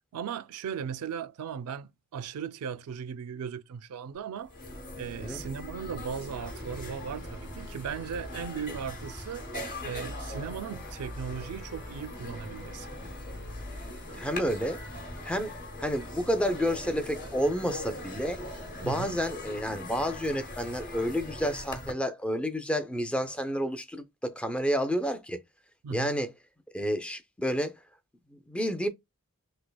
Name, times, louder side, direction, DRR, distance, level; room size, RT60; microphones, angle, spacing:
voice 1, 0.1-4.5 4.9-9.5 9.8-13.0 18.8-19.2 25.8-26.2, right 7 dB, 80° right, 0.3 m, -37 dB
sound 1, 4.2-4.3 4.4-21.9, left 1 dB, 40° left, 0.9 m, -40 dB
sound 2, 5.8-20.6, left 2 dB, 85° left, 1.4 m, -55 dB
voice 2, 14.2-14.8 15.2-15.5 15.8-18.4 18.8-25.4 25.9-26.3 26.7-27.8 28.3-28.9, equal, 5° left, 0.3 m, -30 dB
3.3 x 3.2 x 2.2 m
head